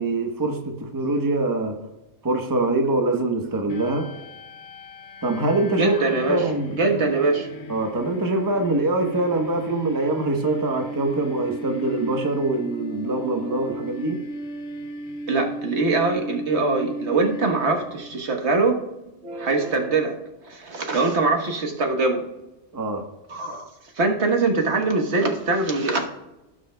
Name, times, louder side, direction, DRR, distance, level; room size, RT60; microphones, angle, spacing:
voice 1, 0.0-1.8 2.2-4.1 5.2-5.9 6.3-6.7 7.7-14.2 22.7-23.1, right 2 dB, 20° right, 3 dB, 0.9 m, -24 dB
sound 1, 3.7-18.2, right 1 dB, 90° left, 1.1 m, -36 dB
voice 2, 5.8-6.4 6.8-7.5 13.5-13.6 15.3-18.8 19.2-20.2 20.4-22.2 23.3-23.7 23.9-26.1, right 3 dB, 65° right, 3 dB, 1.4 m, -22 dB
17.0 x 6.3 x 2.2 m, 0.97 s
omnidirectional pair, 1.3 m